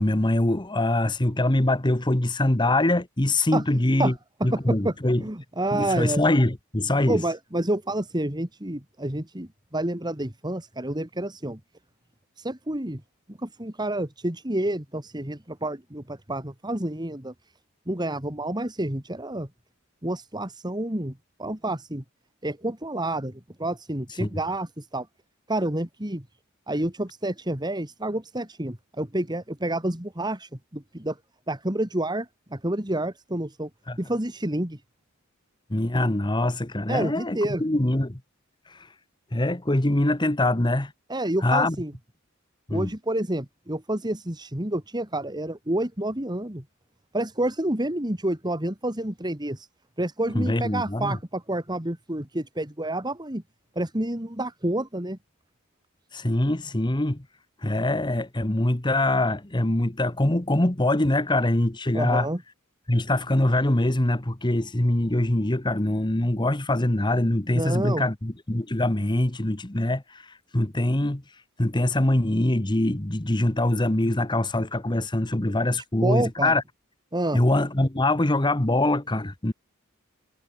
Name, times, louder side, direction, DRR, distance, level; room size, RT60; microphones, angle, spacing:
voice 1, 0.0-4.1 4.4-5.2 5.7-7.2 24.2-24.3 33.9-34.0 35.7-38.2 38.7-38.8 39.3-40.9 41.4-41.8 42.7-42.9 50.3-51.2 56.1-57.2 57.6-62.3 62.9-71.2 71.6-76.6 77.3-79.5, left 1 dB, 20° left, 1.3 m, -23 dB
voice 2, 4.8-6.2 7.1-11.6 12.4-13.0 13.3-17.3 17.9-19.5 20.0-22.0 22.4-25.1 25.5-26.2 26.7-31.2 31.5-33.7 34.0-34.8 36.9-37.6 41.1-41.9 42.7-46.6 47.1-49.7 50.0-53.4 53.8-55.2 61.9-62.4 67.5-68.1 76.0-76.5 77.1-77.4, right 1 dB, 20° right, 2.6 m, -29 dB
head